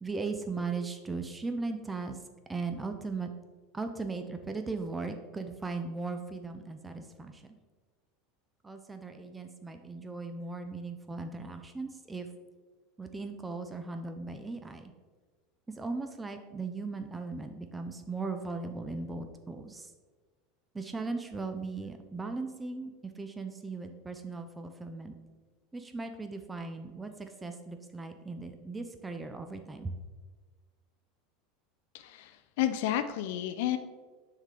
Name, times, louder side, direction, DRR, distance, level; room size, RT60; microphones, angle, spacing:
voice 1, 0.0-2.2 2.5-3.3 3.7-7.4 8.6-12.3 13.0-14.9 15.8-19.9 20.7-22.9 23.2-25.2 25.7-29.9, right 3 dB, 10° right, 7 dB, 0.4 m, -38 dB
voice 2, 31.9-33.8, left 12 dB, 70° left, 9 dB, 0.3 m, -31 dB
9.3 x 3.8 x 3.3 m, 1.4 s
supercardioid pair, 135°, 0 cm